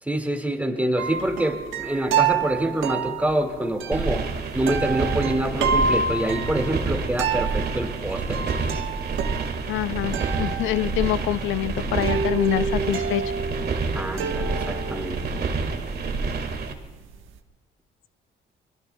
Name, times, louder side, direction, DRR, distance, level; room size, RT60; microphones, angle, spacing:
voice 1, 0.0-4.3 4.5-8.7 13.9-15.2, right 1 dB, 10° right, 4 dB, 2.1 m, -26 dB
sound 1, 1.0-17.4, right 6 dB, 85° right, 1.2 m, -29 dB
sound 2, 3.9-16.7, right 4 dB, 55° right, 1.9 m, -28 dB
voice 2, 9.7-13.2, left 15 dB, 85° left, 14 dB, 0.5 m, -25 dB
25.0 x 22.0 x 2.3 m, 1.3 s
cardioid pair, 90°, 20 cm